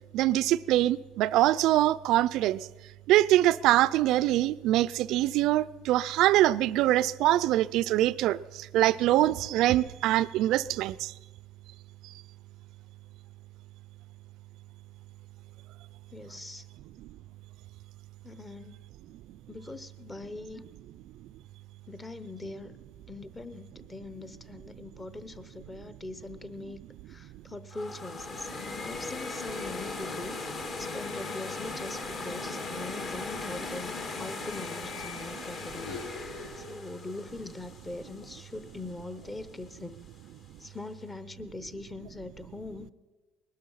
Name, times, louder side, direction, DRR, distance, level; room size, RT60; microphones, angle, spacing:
voice 1, 0.1-2.6 3.1-11.1 17.0-17.1, right 14 dB, 70° right, 0.4 m, -24 dB
voice 2, 16.1-16.7 18.2-18.8 19.5-20.7 21.9-22.8 23.1-26.8 27.1-30.5 30.8-36.0 36.6-40.0 40.6-42.9, left 2 dB, 15° left, 0.9 m, -42 dB
sound 1, 27.7-38.7, left 3 dB, 45° left, 2.1 m, -38 dB
sound 2, 35.6-37.4 37.7-39.9, left 4 dB, 85° left, 2.2 m, -46 dB
20.0 x 12.0 x 5.6 m
cardioid pair, 115°, 0 cm